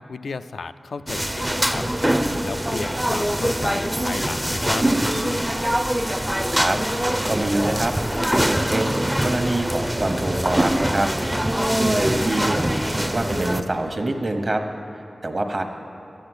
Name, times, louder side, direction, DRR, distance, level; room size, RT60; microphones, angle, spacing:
voice 1, 0.0-1.9 2.4-4.9, left 4 dB, 90° left, 11 dB, 0.4 m, -33 dB
sound 1, 1.1-13.6, right 1 dB, 10° right, 0.5 m, -23 dB
voice 2, 7.3-7.9 8.4-11.1 11.7-12.7 12.9-14.6 15.2-15.6, right 2 dB, 45° right, 5 dB, 1.1 m, -25 dB
12.5 x 8.6 x 8.0 m, 2.6 s
wide cardioid pair, 75°, 0 cm